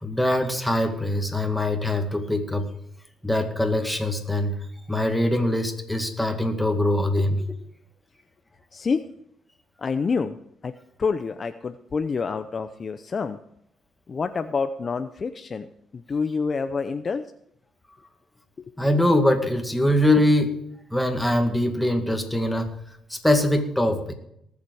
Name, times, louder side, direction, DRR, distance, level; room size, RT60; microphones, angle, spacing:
voice 1, 0.0-2.7 3.2-4.6 4.9-7.4 18.8-20.6 20.9-22.7 23.1-24.1, left 1 dB, 5° left, 4 dB, 2.1 m, -23 dB
voice 2, 8.7-9.1 9.8-10.4 10.6-10.7 11.0-13.4 14.1-17.2 18.6-18.7, left 5 dB, 40° left, 9 dB, 0.6 m, -27 dB
19.0 x 7.3 x 4.8 m, 0.74 s
cardioid pair, 90°, 0 cm